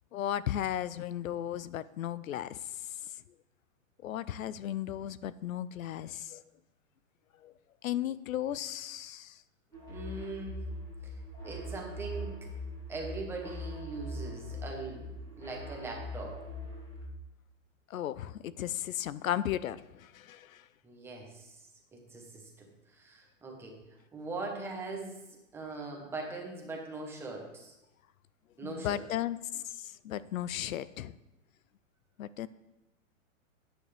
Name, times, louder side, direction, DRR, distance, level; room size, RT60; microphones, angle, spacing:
voice 1, 0.1-2.6 4.0-6.4 7.4-7.5 7.8-9.3 17.9-20.5 28.6-31.1 32.2-32.5, left 11 dB, 80° left, 17 dB, 0.6 m, -35 dB
sound 1, 9.7-17.1, equal, 10° left, 3.1 m, -41 dB
voice 2, 9.9-10.7 11.0-11.1 11.4-12.5 12.9-16.4 20.8-21.6 21.9-23.8 24.1-25.2 25.5-27.7 28.6-29.0, right 3 dB, 5° right, 0 dB, 1.1 m, -41 dB
12.5 x 9.1 x 3.4 m, 0.99 s
hypercardioid pair, 165°, 40 cm